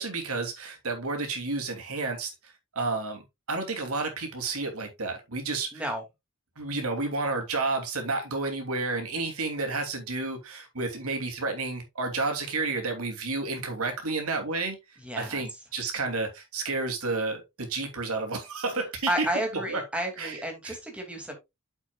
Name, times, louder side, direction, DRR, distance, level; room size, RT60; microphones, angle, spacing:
voice 1, 0.0-2.3 2.7-3.2 3.5-5.8 6.6-14.8 15.2-19.3 19.5-19.8 20.2-20.8, right 3 dB, 70° right, 3.0 m, -31 dB
voice 2, 5.7-6.0 15.0-15.4 19.1-21.3, right 1 dB, 5° right, 2.6 m, -31 dB
8.9 x 7.4 x 2.4 m
head